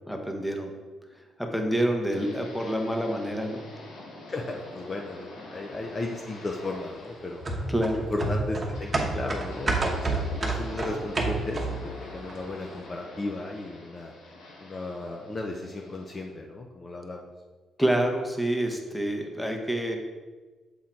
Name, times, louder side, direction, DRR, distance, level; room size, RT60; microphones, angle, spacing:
voice 1, 0.1-0.7 1.1-3.6 7.7-8.0 17.8-20.0, right 1 dB, 5° left, 3 dB, 0.9 m, -27 dB
sound 1, 2.1-16.3, left 2 dB, 90° left, 1.2 m, -46 dB
voice 2, 4.3-7.4 7.9-11.7 12.0-14.1 14.6-17.3, left 2 dB, 30° left, 1 dB, 0.6 m, -35 dB
sound 2, 7.5-11.9 12.3-12.4, right 2 dB, 30° right, 1.0 m, -28 dB
7.1 x 3.7 x 4.4 m, 1.4 s
cardioid pair, 100°, 0 cm